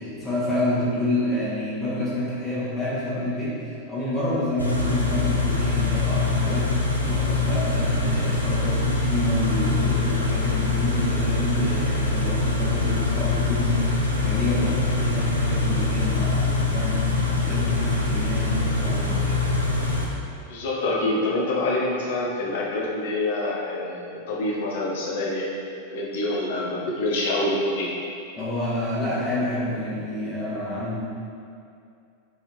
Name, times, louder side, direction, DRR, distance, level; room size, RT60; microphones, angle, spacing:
voice 1, 0.0-6.7 7.0-19.4 28.4-31.0, left 1 dB, 15° left, -9 dB, 1.3 m, -28 dB
Car / Idling, 4.6-20.1, left 3 dB, 85° left, 0.5 m, -24 dB
voice 2, 20.5-25.5 25.9-27.9, left 2 dB, 55° left, -3 dB, 0.8 m, -26 dB
4.6 x 3.3 x 3.1 m, 2.5 s
figure-of-eight pair, 90°, 0 cm